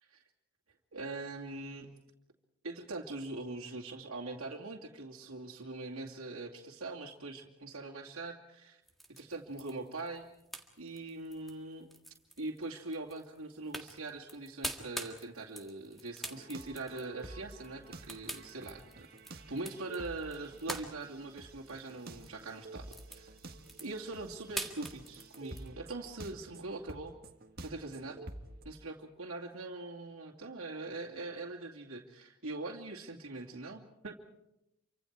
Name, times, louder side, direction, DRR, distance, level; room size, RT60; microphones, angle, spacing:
voice 1, 0.9-1.9 2.6-8.8 9.2-10.3 10.8-11.9 12.4-23.3 23.8-27.1 27.6-28.3 28.6-34.1, right 2 dB, 80° right, -3 dB, 2.5 m, -42 dB
sound 1, 8.9-25.7, right 1 dB, ahead, 1.7 m, -46 dB
sound 2, 16.2-28.6, right 2 dB, 45° right, 1.7 m, -50 dB
28.0 x 25.0 x 4.7 m, 0.88 s
head